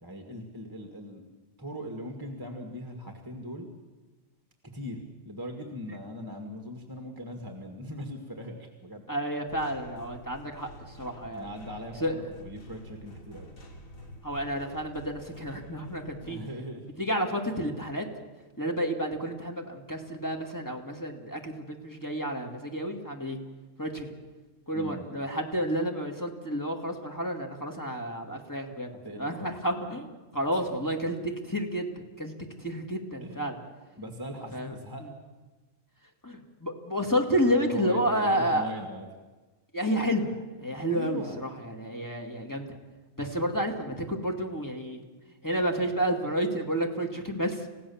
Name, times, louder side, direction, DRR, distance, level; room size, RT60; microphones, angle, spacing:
voice 1, 0.0-3.7 4.7-9.0 11.3-13.5 16.2-16.8 24.7-25.1 29.0-29.5 30.5-30.9 33.2-33.5 34.0-35.1 37.4-39.1 40.9-41.4, equal, 15° right, 3 dB, 1.9 m, -40 dB
voice 2, 9.1-11.5 12.0-12.2 14.2-16.4 17.0-18.1 18.6-23.4 23.8-24.1 24.7-31.2 31.4-32.3 32.6-33.6 34.5-34.7 35.0-35.1 36.2-38.7 39.7-42.8 43.2-45.0 45.4-47.7, equal, 15° left, 2 dB, 2.2 m, -30 dB
sound 1, 9.5-16.4, equal, 85° left, 3.1 m, -48 dB
29.5 x 15.5 x 7.2 m, 1.2 s
omnidirectional pair, 1.4 m